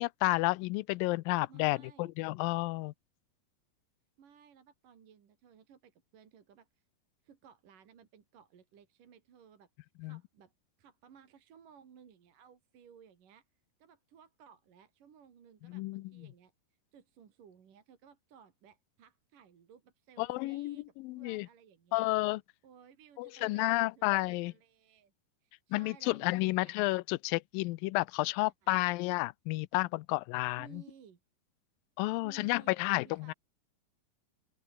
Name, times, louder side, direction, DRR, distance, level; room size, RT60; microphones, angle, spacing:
voice 1, 0.0-2.9 10.0-10.2 15.7-16.3 20.2-21.5 21.9-22.4 23.2-24.5 25.7-30.8 32.0-33.3, left 22 dB, 85° left, 2.3 m, -31 dB
voice 2, 1.5-2.1 4.2-6.8 7.2-9.7 10.0-10.5 10.8-13.5 13.8-16.5 16.9-22.0 22.6-25.1 25.4-26.8 28.4-28.9 30.6-31.2 32.2-33.3, right 7 dB, 65° right, 4.2 m, -59 dB
open air
omnidirectional pair, 4.2 m